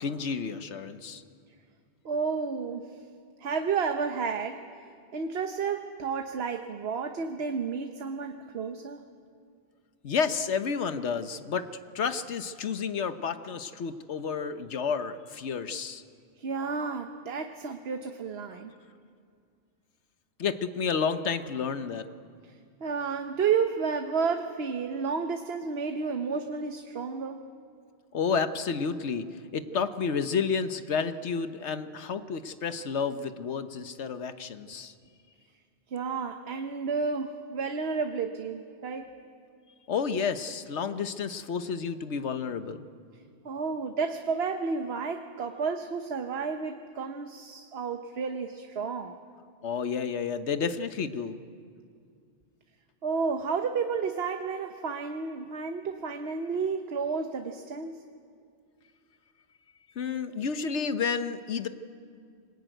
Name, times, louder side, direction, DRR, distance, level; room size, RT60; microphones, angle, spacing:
voice 1, 0.0-1.2 10.0-11.7 11.9-16.0 18.5-18.6 20.4-22.0 28.1-29.3 29.5-34.9 39.9-42.8 49.6-51.4 60.0-61.7, left 6 dB, 85° left, 10 dB, 1.3 m, -30 dB
voice 2, 2.0-3.0 3.4-4.6 5.1-9.0 16.4-18.7 22.4-22.5 22.8-27.4 35.9-39.1 43.4-49.2 53.0-58.0, right 5 dB, 65° right, 6 dB, 1.2 m, -31 dB
23.0 x 20.0 x 9.1 m, 2.2 s
omnidirectional pair, 1.1 m